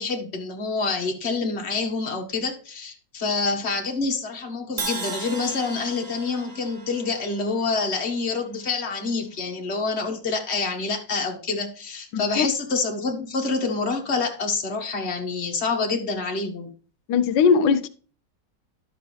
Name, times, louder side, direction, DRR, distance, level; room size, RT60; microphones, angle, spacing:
voice 1, 0.0-16.7, left 4 dB, 40° left, 1.7 m, -27 dB
Crash cymbal, 4.8-8.8, right 4 dB, 35° right, 0.6 m, -37 dB
voice 2, 12.1-12.5 17.1-17.9, left 6 dB, 90° left, 1.3 m, -19 dB
11.5 x 6.4 x 3.3 m
omnidirectional pair, 1.9 m